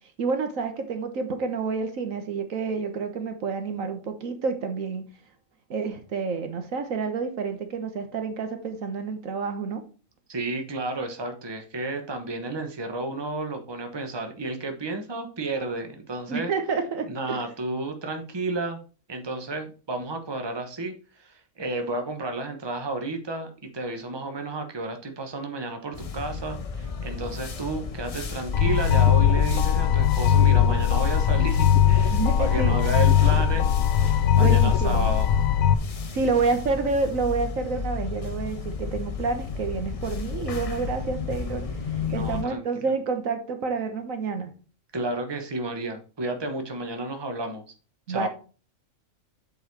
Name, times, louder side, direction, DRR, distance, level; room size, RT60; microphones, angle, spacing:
voice 1, 0.2-5.1 5.7-9.8 16.3-17.4 32.1-32.8 34.4-35.1 36.1-41.7 42.1-44.5 48.1-48.3, right 4 dB, 75° right, 1.5 m, -28 dB
voice 2, 10.3-16.5 17.0-18.8 19.1-33.7 34.3-35.3 42.0-42.6 44.9-47.6 48.1-48.3, right 2 dB, 20° right, 1.1 m, -32 dB
sound 1, 25.9-42.4, left 5 dB, 35° left, 0.6 m, -34 dB
sound 2, 28.5-35.7, left 9 dB, 85° left, 1.1 m, -20 dB
7.8 x 4.7 x 4.7 m
omnidirectional pair, 1.4 m